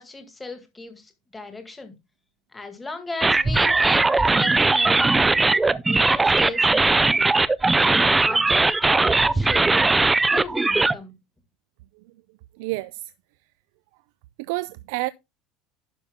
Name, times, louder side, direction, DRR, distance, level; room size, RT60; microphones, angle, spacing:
voice 1, 0.0-1.9 2.5-5.4 5.9-7.3 7.8-9.9 10.3-11.1, left 3 dB, 10° left, 2.0 m, -36 dB
sound 1, 3.2-10.9, right 3 dB, 10° right, 0.5 m, -19 dB
voice 2, 12.6-13.0 14.4-15.1, right 21 dB, 80° right, 0.4 m, -29 dB
11.5 x 5.8 x 3.6 m
cardioid pair, 150°, 0 cm